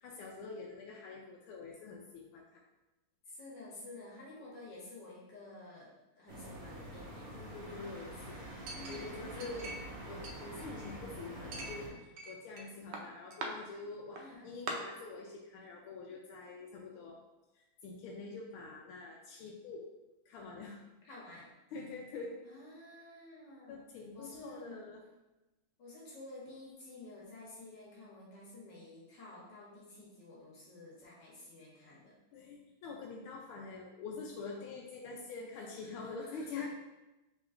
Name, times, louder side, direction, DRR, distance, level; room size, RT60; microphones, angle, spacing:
voice 1, 0.0-2.6 7.3-8.4 8.9-9.7 10.0-17.2 17.5-19.9 20.3-20.8 21.7-22.4 23.7-25.0 32.3-36.7, left 4 dB, 80° left, -1 dB, 1.4 m, -46 dB
voice 2, 3.3-7.3 8.7-9.6 14.2-14.5 21.0-21.5 22.4-23.8 24.1-24.9 25.8-32.2 35.5-36.7, left 2 dB, 60° left, -5 dB, 1.5 m, -51 dB
sound 1, 6.3-11.9, right 1 dB, 50° right, 1.3 m, -46 dB
Chink clink, 8.7-9.9 10.2-11.0 11.5-12.6 12.9-13.5 14.2-14.3 14.7-14.8, right 2 dB, 70° right, 1.1 m, -43 dB
5.1 x 3.6 x 2.5 m, 1.0 s
omnidirectional pair, 2.4 m